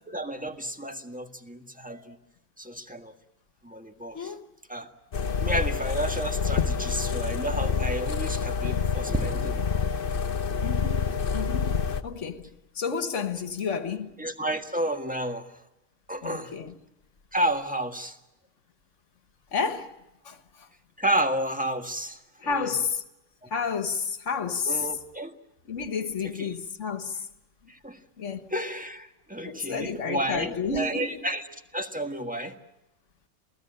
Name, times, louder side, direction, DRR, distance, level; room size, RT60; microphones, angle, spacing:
voice 1, 0.1-2.2 2.6-3.1 3.6-4.3 4.7-4.9 5.4-9.6 14.2-15.5 16.1-16.5 17.3-18.2 21.0-22.7 23.4-23.5 24.6-25.3 26.2-26.5 27.7-28.0 28.5-31.4 31.7-32.5, right 1 dB, 5° right, 1.6 m, -31 dB
sound 1, 5.1-12.0, left 5 dB, 45° left, 1.2 m, -27 dB
voice 2, 10.6-11.0 11.3-12.5 12.8-14.1 16.2-16.7 19.5-19.9 20.3-20.4 22.4-23.0 23.5-24.8 25.7-27.2 28.2-28.5 29.4-31.2, left 5 dB, 65° left, 1.8 m, -31 dB
28.0 x 17.0 x 8.9 m
omnidirectional pair, 1.4 m